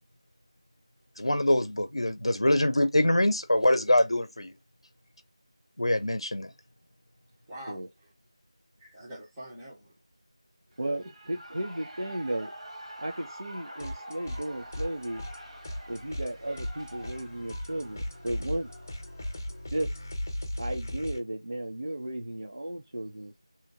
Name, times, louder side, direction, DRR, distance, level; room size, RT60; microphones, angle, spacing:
voice 1, 1.2-4.5 5.8-6.5, left 1 dB, 70° left, 0.6 m, -24 dB
voice 2, 7.5-8.1 8.8-9.9 11.0-11.4, equal, 5° right, 0.3 m, -45 dB
Shout / Cheering, 10.7-19.7, right 1 dB, 85° right, 1.2 m, -47 dB
voice 3, 10.8-12.5 13.0-15.3 15.9-18.7 19.7-19.9 20.6-23.3, right 1 dB, 60° right, 0.6 m, -34 dB
sound 1, 13.8-14.5 14.7-21.2, left 1 dB, 30° left, 0.6 m, -37 dB
2.8 x 2.1 x 2.7 m
figure-of-eight pair, 170°, 3 cm